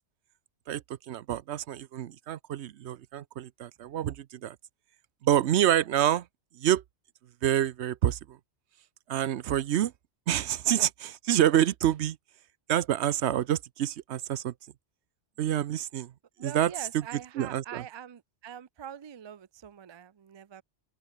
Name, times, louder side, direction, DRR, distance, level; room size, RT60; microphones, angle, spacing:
voice 1, 0.7-4.6 5.2-6.3 6.5-6.8 7.4-8.4 9.1-9.9 10.3-12.2 12.7-14.5 15.4-16.1 16.4-17.9, right 11 dB, 75° right, 0.9 m, -27 dB
voice 2, 16.4-20.6, right 9 dB, 45° right, 0.3 m, -43 dB
omnidirectional pair, 1.2 m